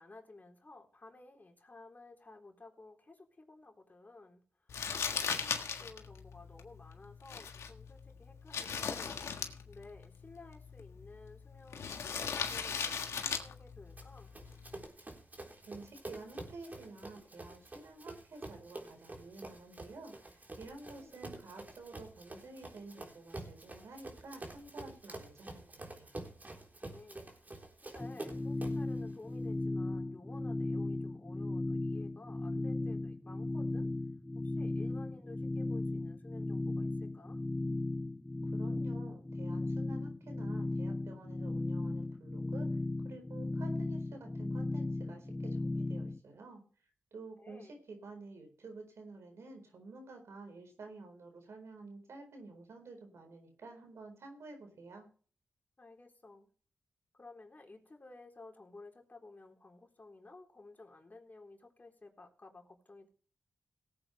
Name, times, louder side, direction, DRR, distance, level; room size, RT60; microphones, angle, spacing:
voice 1, 0.0-4.4 5.0-9.2 9.7-14.3 21.0-21.2 26.8-27.3 27.8-33.9 34.4-37.4 47.4-47.7 55.8-56.5 57.1-63.1, left 2 dB, 40° left, 2 dB, 3.8 m, -55 dB
Crumpling crinkling, 4.7-14.9, left 6 dB, 85° left, 1.6 m, -39 dB
Run, 14.0-28.9, right 2 dB, 40° right, 3.9 m, -48 dB
voice 2, 15.7-26.1 38.5-42.8 43.0-46.6 47.1-55.1, right 3 dB, 75° right, 4 dB, 4.3 m, -51 dB
sound 1, 28.0-46.2, left 2 dB, 15° left, 0.5 m, -36 dB
18.0 x 8.8 x 3.3 m, 0.41 s
cardioid pair, 45°, 5 cm